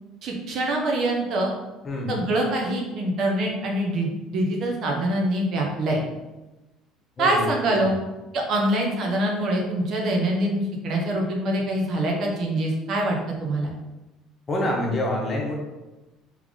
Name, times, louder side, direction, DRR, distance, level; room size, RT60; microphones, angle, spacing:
voice 1, 0.2-1.5 2.1-6.0 7.2-8.0 8.3-13.7, right 1 dB, 55° right, 0 dB, 1.0 m, -24 dB
voice 2, 1.8-2.2 7.2-7.5 14.5-15.6, left 1 dB, 30° left, -2 dB, 1.2 m, -26 dB
3.5 x 3.3 x 3.7 m, 1.1 s
supercardioid pair, 105°, 0 cm